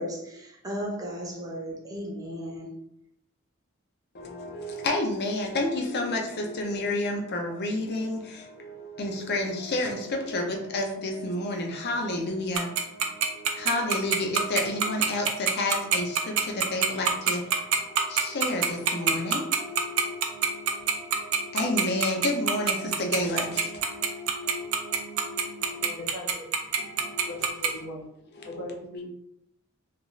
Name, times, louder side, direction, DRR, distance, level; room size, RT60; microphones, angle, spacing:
voice 1, 0.0-2.7, equal, 15° right, -2 dB, 0.6 m, -35 dB
voice 2, 4.1-25.9 26.7-27.5 28.4-28.7, left 1 dB, 50° left, 2 dB, 0.5 m, -31 dB
Tick-tock, 12.5-27.7, right 8 dB, 75° right, 0.4 m, -23 dB
voice 3, 25.7-26.4 27.3-28.0 28.4-29.1, left 1 dB, 85° left, -3 dB, 0.8 m, -39 dB
2.4 x 2.3 x 3.0 m, 0.79 s
head